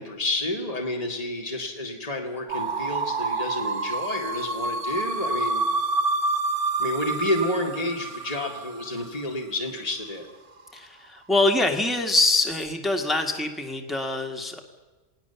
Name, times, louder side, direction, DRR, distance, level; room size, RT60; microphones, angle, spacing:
voice 1, 0.0-5.7 6.8-10.3, left 1 dB, 30° left, 2 dB, 2.4 m, -30 dB
sound 1, 2.5-9.5, right 3 dB, 80° right, 1.8 m, -28 dB
voice 2, 10.7-14.6, left 2 dB, ahead, 3 dB, 2.0 m, -24 dB
28.0 x 19.0 x 7.0 m, 1.3 s
omnidirectional pair, 1.2 m